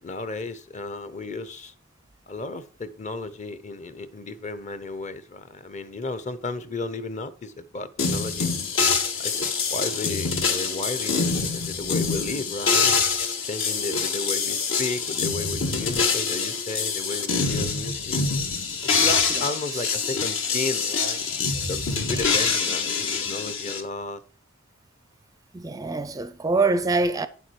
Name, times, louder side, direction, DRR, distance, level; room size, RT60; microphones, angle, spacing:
voice 1, 0.0-1.7 2.3-8.5 9.2-9.4 9.7-13.0 13.4-18.2 19.0-21.2 21.7-24.2, left 3 dB, 35° left, 0.8 m, -33 dB
sound 1, 8.0-23.8, left 5 dB, 70° left, 1.6 m, -25 dB
voice 2, 25.5-27.3, right 3 dB, 15° right, 0.4 m, -25 dB
9.3 x 7.2 x 4.7 m
head